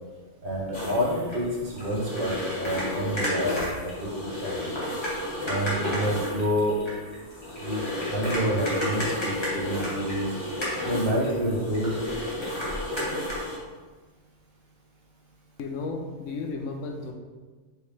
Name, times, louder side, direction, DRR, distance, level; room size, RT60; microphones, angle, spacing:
voice 1, 0.4-4.7 5.4-6.8 7.6-7.8 8.1-10.3 10.8-12.0, equal, 45° right, -3 dB, 1.0 m, -28 dB
sound 1, 0.7-13.6, left 1 dB, 20° left, 1.2 m, -32 dB
voice 2, 15.6-17.1, left 3 dB, 70° left, 3 dB, 0.9 m, -33 dB
4.8 x 3.1 x 3.2 m, 1.4 s
omnidirectional pair, 1.4 m